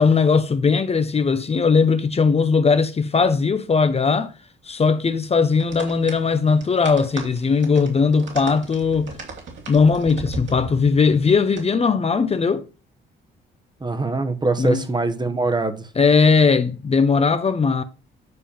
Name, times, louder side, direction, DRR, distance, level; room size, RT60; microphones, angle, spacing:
voice 1, 0.0-4.3 4.7-9.2 9.7-12.6 14.6-14.8 16.0-17.8, left 5 dB, 30° left, 0.8 m, -19 dB
sound 1, 5.6-11.6, right 3 dB, 65° right, 3.0 m, -37 dB
voice 2, 13.8-15.9, right 3 dB, 20° right, 1.1 m, -23 dB
9.7 x 3.6 x 7.0 m
cardioid pair, 90°, 20 cm